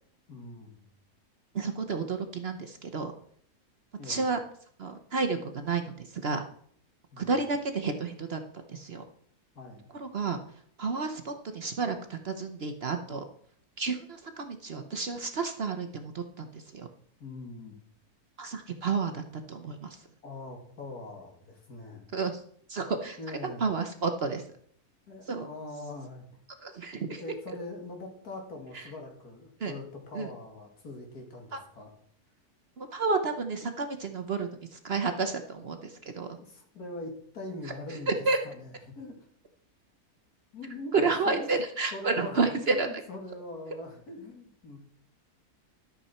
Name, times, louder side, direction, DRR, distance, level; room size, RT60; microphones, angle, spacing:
voice 1, 0.3-0.8 4.0-4.2 7.1-7.3 9.5-9.9 17.2-17.8 20.2-22.1 23.2-23.6 25.1-26.3 27.2-31.9 36.3-38.1 38.4-39.3 40.5-40.9 41.2-41.5 41.9-44.8, left 2 dB, 75° left, 2 dB, 2.7 m, -42 dB
voice 2, 1.5-3.1 4.0-4.4 4.8-6.4 7.2-9.0 9.9-10.4 10.8-13.2 13.8-16.9 18.4-20.1 22.1-22.4 22.7-23.2 23.4-24.5 25.3-25.5 26.6-27.2 28.7-28.8 29.6-29.7 30.1-30.3 31.5-31.6 32.8-36.4 38.1-38.4 40.9-42.9, right 4 dB, 50° right, 7 dB, 1.0 m, -31 dB
12.0 x 8.4 x 4.3 m, 0.64 s
omnidirectional pair, 1.6 m